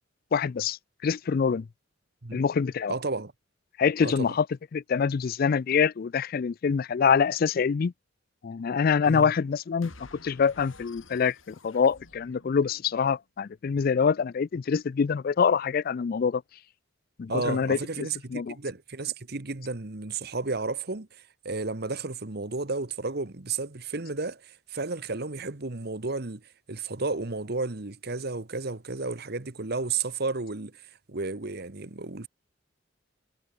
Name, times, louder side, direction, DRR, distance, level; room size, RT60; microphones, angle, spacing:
voice 1, 0.3-1.6 2.3-2.9 3.8-4.5 4.7-7.9 8.4-16.4 17.2-17.8 18.3-18.5, left 6 dB, 50° left, 0.4 m, -25 dB
voice 2, 2.9-3.3 4.0-4.3 9.1-9.3 17.3-26.4 26.7-30.8 31.1-32.3, right 3 dB, 55° right, 1.3 m, -32 dB
sound 1, 9.8-13.2, left 3 dB, 85° left, 6.9 m, -52 dB
head